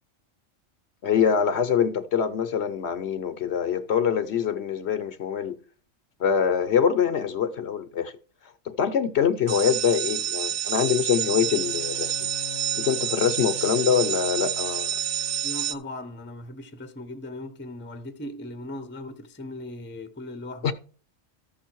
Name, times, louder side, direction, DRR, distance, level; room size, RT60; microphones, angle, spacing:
voice 1, 1.0-5.6 6.2-8.1 8.7-12.3 12.7-14.9 20.6-20.7, left 7 dB, 60° left, 0.9 m, -24 dB
sound 1, 9.5-15.7, right 11 dB, 65° right, 0.9 m, -28 dB
Bowed string instrument, 11.0-15.8, left 8 dB, 85° left, 1.0 m, -42 dB
voice 2, 15.4-20.7, left 1 dB, 10° left, 0.6 m, -38 dB
13.5 x 5.7 x 4.5 m
omnidirectional pair, 1.3 m